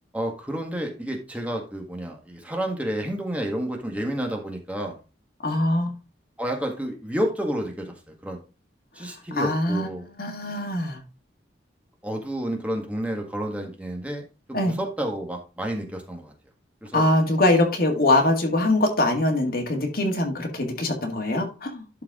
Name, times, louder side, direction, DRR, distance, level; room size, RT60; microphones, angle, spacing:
voice 1, 0.1-5.0 6.4-8.4 8.9-10.0 12.0-14.2 14.5-16.3 16.8-17.0, equal, 10° right, 1.6 m, -30 dB
voice 2, 5.4-6.0 9.3-9.9 10.2-11.0 14.5-14.7 16.9-22.0, left 1 dB, 55° left, 2.0 m, -23 dB
11.5 x 4.7 x 3.7 m
head